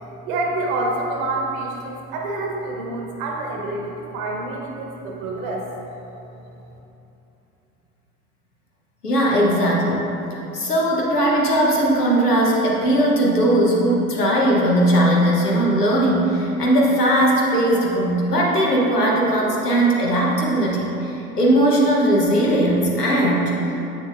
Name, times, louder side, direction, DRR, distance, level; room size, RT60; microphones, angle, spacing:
voice 1, 0.2-5.7, right 2 dB, 65° right, 0 dB, 1.3 m, -27 dB
voice 2, 9.0-10.1 10.5-23.9, right 1 dB, 90° left, -3 dB, 1.2 m, -19 dB
7.6 x 6.6 x 2.6 m, 3.0 s
figure-of-eight pair, 75°, 45 cm